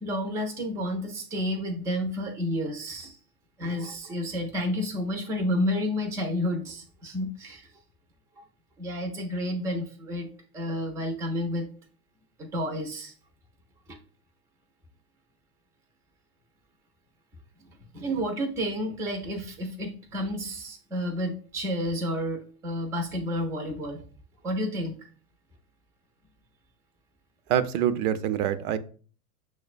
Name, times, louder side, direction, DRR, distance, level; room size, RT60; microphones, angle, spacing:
voice 1, 0.0-3.2 3.6-7.7 8.3-8.4 8.8-10.3 10.5-11.7 12.4-13.1 13.9-14.0 17.9-24.0 24.4-25.0, equal, 5° right, 3 dB, 0.4 m, -30 dB
voice 2, 27.5-28.8, right 10 dB, 70° right, 13 dB, 0.5 m, -25 dB
6.0 x 2.1 x 2.4 m, 0.41 s
hypercardioid pair, 110°, 46 cm